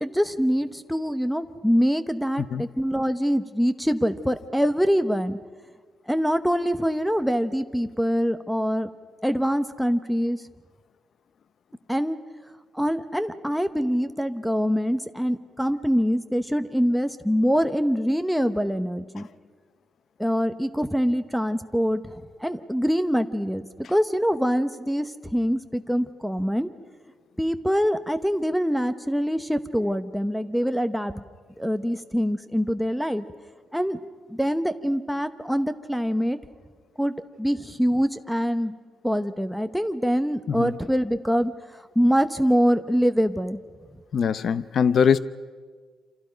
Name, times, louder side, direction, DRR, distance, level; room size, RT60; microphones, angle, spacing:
voice 1, 0.0-5.4 6.1-8.9 9.2-10.4 11.9-12.2 12.7-19.3 20.2-26.7 27.4-31.2 31.6-33.2 33.7-34.0 34.3-36.4 37.0-38.8 39.0-41.5 41.9-43.6, equal, ahead, 0.9 m, -24 dB
voice 2, 44.1-45.2, left 7 dB, 45° left, 0.7 m, -21 dB
28.5 x 27.0 x 5.2 m
cardioid pair, 165°, 0 cm